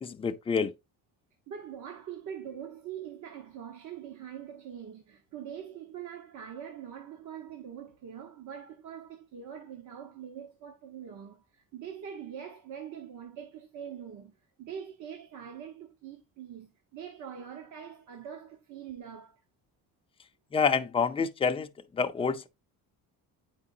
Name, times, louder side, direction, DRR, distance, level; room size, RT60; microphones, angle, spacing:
voice 1, 0.0-0.7 20.5-22.5, left 5 dB, 15° left, 0.5 m, -28 dB
voice 2, 1.5-19.4, right 8 dB, 55° right, 1.2 m, -43 dB
9.1 x 4.8 x 2.7 m
cardioid pair, 165°, 35 cm